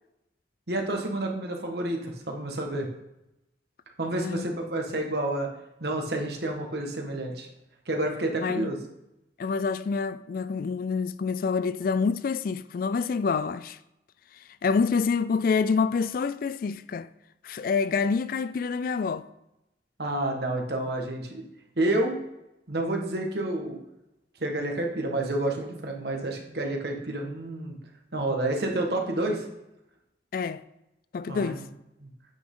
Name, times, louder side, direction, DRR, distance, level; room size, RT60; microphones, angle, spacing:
voice 1, 0.7-2.9 4.0-5.5 5.8-7.5 7.9-8.8 20.0-21.4 21.8-22.2 22.7-23.8 24.4-27.7 28.1-29.4 31.3-31.7 32.0-32.1, right 1 dB, 60° right, 1.5 m, -29 dB
voice 2, 4.1-4.5 8.4-8.7 9.4-13.8 14.6-17.1 17.4-19.3 30.3-30.6 31.1-31.6, left 5 dB, 50° left, 0.3 m, -27 dB
9.0 x 6.1 x 3.8 m
head